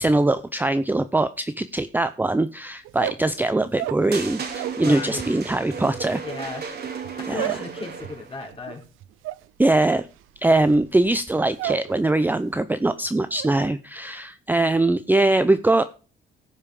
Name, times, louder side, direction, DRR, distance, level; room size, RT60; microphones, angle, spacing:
voice 1, 0.0-6.2 7.3-7.5 9.6-10.1 10.4-15.8, right 2 dB, 10° right, 12 dB, 0.5 m, -22 dB
sound 1, 2.8-4.9 5.2-12.0 12.3-12.8 13.0-13.6, right 15 dB, 85° right, 0.5 m, -34 dB
sound 2, 4.1-8.4, right 6 dB, 55° right, 2.3 m, -34 dB
voice 2, 4.8-5.2 6.2-6.6 6.9-8.8, left 4 dB, 30° left, 1 dB, 4.1 m, -35 dB
16.5 x 5.6 x 4.9 m, 0.36 s
cardioid pair, 90°, 20 cm